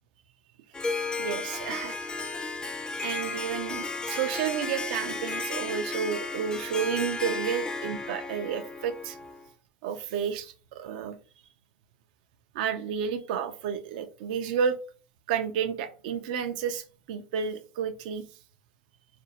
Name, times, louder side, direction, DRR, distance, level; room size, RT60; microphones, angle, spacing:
Harp, 0.7-9.5, left 3 dB, 20° left, 0.3 m, -34 dB
voice 1, 1.2-2.0 3.0-9.2 9.8-11.2 12.5-14.8 15.3-18.2, right 7 dB, 70° right, 0.4 m, -31 dB
2.5 x 2.0 x 2.7 m
hypercardioid pair, 90°, 5 cm